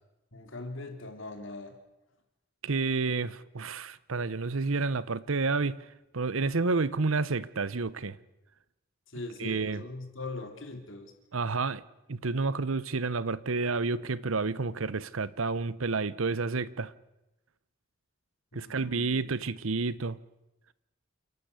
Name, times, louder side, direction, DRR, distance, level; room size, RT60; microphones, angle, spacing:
voice 1, 0.3-1.8 9.1-11.1 18.5-19.2, left 2 dB, 70° left, 3.2 m, -41 dB
voice 2, 2.6-5.8 6.1-8.2 9.4-9.8 11.3-11.8 12.1-16.9 18.5-20.2, right 4 dB, 80° right, 0.9 m, -30 dB
29.0 x 12.0 x 8.3 m
head